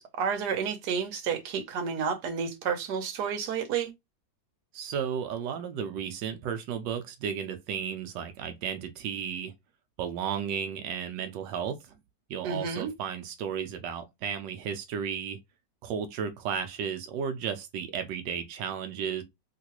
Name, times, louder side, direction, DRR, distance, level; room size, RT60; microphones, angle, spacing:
voice 1, 0.0-3.9 12.4-12.9, right 6 dB, 70° right, 1.3 m, -31 dB
voice 2, 4.7-9.5 10.0-11.9 12.3-15.4 15.8-19.2, right 7 dB, 90° right, 1.2 m, -34 dB
3.1 x 3.0 x 2.9 m
omnidirectional pair, 1.9 m